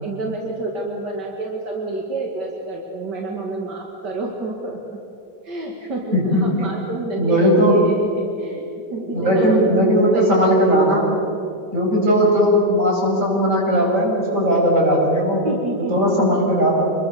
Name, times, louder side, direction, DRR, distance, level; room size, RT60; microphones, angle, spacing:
voice 1, 0.0-5.0 5.4-8.6 8.9-9.6 10.1-10.5 15.4-16.0, right 2 dB, 80° right, 0 dB, 2.7 m, -29 dB
voice 2, 6.1-6.5 7.2-7.9 9.1-11.1 11.7-15.4 15.9-16.8, equal, 45° right, -2 dB, 6.9 m, -17 dB
27.0 x 22.0 x 6.8 m, 2.6 s
omnidirectional pair, 1.8 m